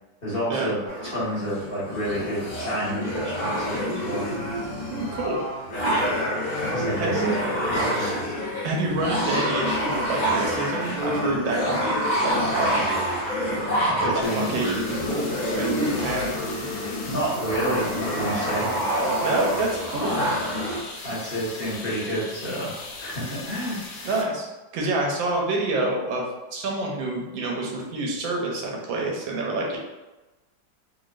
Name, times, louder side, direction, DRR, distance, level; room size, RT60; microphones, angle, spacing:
voice 1, 0.2-4.2 6.7-8.2 13.7-14.6 17.1-18.7 19.4-19.5 19.9-20.3 21.0-24.1, equal, 35° left, -9 dB, 1.3 m, -30 dB
sound 1, 0.9-20.8, equal, 55° left, 1.5 m, -27 dB
voice 2, 4.9-5.4 7.0-7.4 8.6-12.9 14.0-16.4 19.2-20.1 24.0-29.8, right 2 dB, 85° right, -1 dB, 1.5 m, -28 dB
sound 2, 14.2-24.2, left 3 dB, 80° left, 1.4 m, -39 dB
3.8 x 3.3 x 2.4 m, 1.1 s
omnidirectional pair, 2.1 m